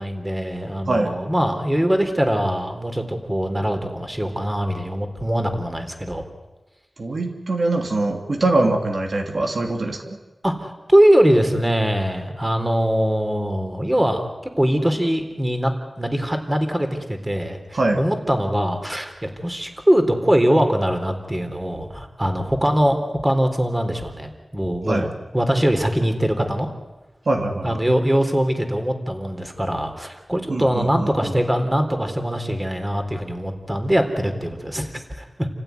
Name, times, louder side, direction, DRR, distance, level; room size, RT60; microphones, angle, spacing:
voice 1, 0.0-6.2 10.4-14.3 14.6-26.7 27.6-35.5, equal, 15° right, 6 dB, 3.7 m, -22 dB
voice 2, 7.0-10.2 17.7-18.0 24.9-25.1 27.3-27.8 30.5-31.3, right 2 dB, 70° right, 2 dB, 3.0 m, -23 dB
29.0 x 15.5 x 9.6 m, 1.1 s
wide cardioid pair, 60°, 0 cm